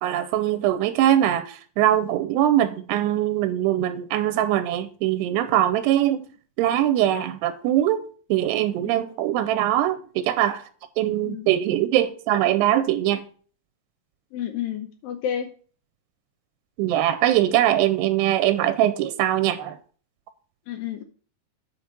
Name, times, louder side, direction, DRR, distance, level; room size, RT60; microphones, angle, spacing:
voice 1, 0.0-6.2 6.6-8.1 8.3-10.6 11.0-13.2 16.8-19.8, right 12 dB, 90° right, 2.7 m, -22 dB
voice 2, 14.3-15.5 20.7-21.0, left 9 dB, 75° left, 2.2 m, -30 dB
8.7 x 5.0 x 6.0 m
omnidirectional pair, 4.8 m